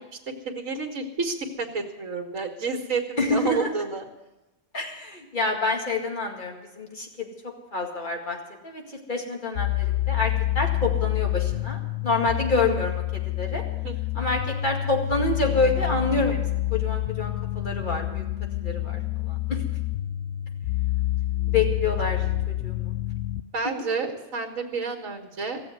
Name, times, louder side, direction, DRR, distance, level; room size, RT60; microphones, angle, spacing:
voice 1, 0.5-4.1 13.8-13.9 23.5-25.6, right 4 dB, 75° right, 3 dB, 1.9 m, -30 dB
voice 2, 3.2-3.7 4.7-7.3 7.7-8.4 8.6-13.6 14.1-16.4 16.7-18.2 18.6-19.0 19.3-19.6 21.5-22.9, left 3 dB, 35° left, 1 dB, 2.3 m, -27 dB
sound 1, 9.5-23.4, left 15 dB, 90° left, 1.1 m, -28 dB
16.0 x 7.6 x 9.4 m, 1.0 s
omnidirectional pair, 1.4 m